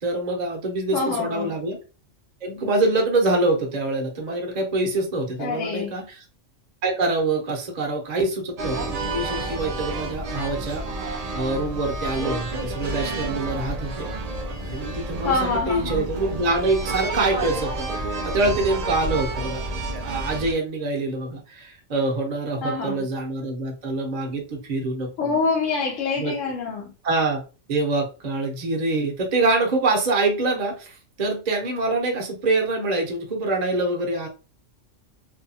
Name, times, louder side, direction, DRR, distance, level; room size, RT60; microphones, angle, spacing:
voice 1, 0.0-1.8 2.4-6.2 6.8-10.8 11.3-14.1 14.7-19.6 20.0-25.4 26.2-26.3 27.0-27.4 27.7-34.3, right 2 dB, 45° right, 0.6 m, -25 dB
voice 2, 0.9-1.5 5.4-5.9 15.2-16.1 22.6-23.0 25.2-26.9, left 4 dB, 90° left, 0.9 m, -26 dB
sound 1, 8.6-20.5, right 2 dB, 85° right, 0.3 m, -30 dB
2.6 x 2.2 x 2.6 m
omnidirectional pair, 1.3 m